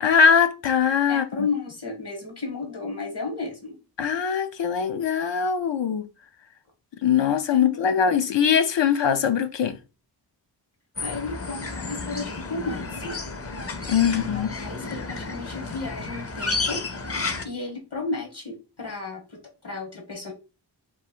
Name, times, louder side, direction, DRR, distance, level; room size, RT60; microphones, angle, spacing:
voice 1, 0.0-1.5 4.0-6.1 7.0-9.8 13.9-14.5, left 7 dB, 85° left, 0.6 m, -21 dB
voice 2, 1.1-3.8 7.5-8.2 11.0-13.2 14.0-16.8 17.4-20.3, left 3 dB, 65° left, 1.5 m, -33 dB
sound 1, 11.0-17.5, left 3 dB, 35° left, 0.6 m, -32 dB
3.6 x 2.5 x 4.4 m
wide cardioid pair, 70°, 42 cm